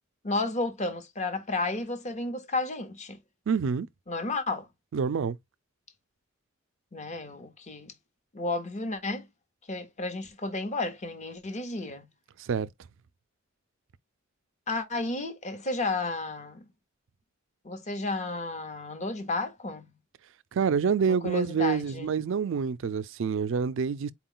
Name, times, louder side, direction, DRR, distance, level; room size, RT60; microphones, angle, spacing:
voice 1, 0.2-3.2 4.1-4.7 6.9-7.9 8.3-9.3 9.7-12.1 14.7-16.6 17.6-19.9 21.1-22.1, left 2 dB, 35° left, 0.8 m, -32 dB
voice 2, 3.5-3.9 4.9-5.4 12.4-12.7 20.5-24.1, right 6 dB, 65° right, 0.4 m, -27 dB
4.4 x 2.3 x 3.7 m
head